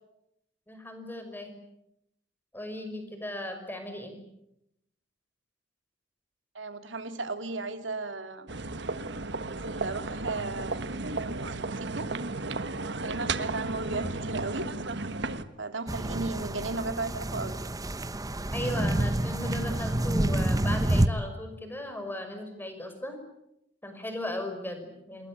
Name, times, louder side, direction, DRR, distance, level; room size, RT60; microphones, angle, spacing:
voice 1, 0.7-1.5 2.5-4.2 18.5-23.2 23.8-25.3, left 1 dB, 10° left, 6 dB, 5.8 m, -37 dB
voice 2, 6.5-8.5 9.4-12.1 13.0-14.7 15.6-17.6, right 3 dB, 85° right, 8 dB, 2.5 m, -35 dB
sound 1, 8.5-15.4, right 3 dB, 65° right, 1.5 m, -34 dB
sound 2, 15.9-21.1, right 1 dB, 20° right, 1.0 m, -28 dB
27.5 x 21.5 x 8.9 m, 0.80 s
head